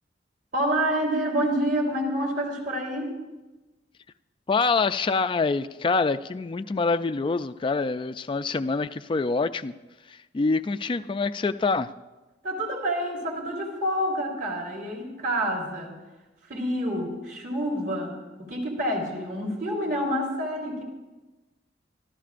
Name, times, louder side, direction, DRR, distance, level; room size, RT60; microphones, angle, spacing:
voice 1, 0.5-3.2 12.4-15.9 16.5-20.8, equal, 50° right, -1 dB, 3.6 m, -28 dB
voice 2, 4.5-9.7 10.1-11.9, left 4 dB, 25° left, 11 dB, 0.3 m, -25 dB
25.0 x 14.5 x 2.5 m, 1.1 s
head